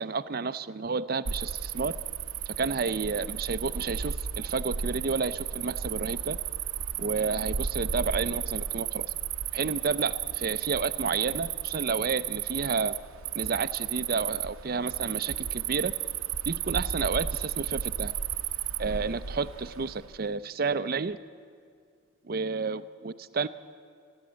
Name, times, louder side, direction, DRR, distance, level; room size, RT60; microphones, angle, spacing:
voice 1, 0.0-2.0 2.5-6.4 7.0-9.1 9.5-13.0 13.3-15.9 16.5-18.1 18.8-21.2 22.2-23.5, right 4 dB, 45° right, 14 dB, 0.5 m, -31 dB
Cricket, 1.2-20.2, right 9 dB, 85° right, 0.6 m, -33 dB
29.0 x 10.5 x 8.7 m, 2.1 s
head